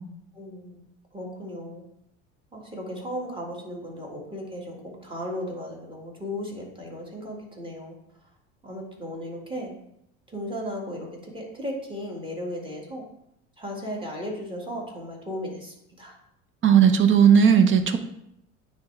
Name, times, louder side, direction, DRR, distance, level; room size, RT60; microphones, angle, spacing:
voice 1, 0.3-0.8 1.1-1.8 2.5-8.0 8.2-8.3 8.6-9.7 10.3-13.0 13.6-16.2, equal, 15° right, -1 dB, 2.0 m, -35 dB
voice 2, 16.6-18.0, right 7 dB, 40° right, 9 dB, 0.8 m, -16 dB
9.4 x 3.6 x 3.3 m, 0.78 s
supercardioid pair, 90°, 32 cm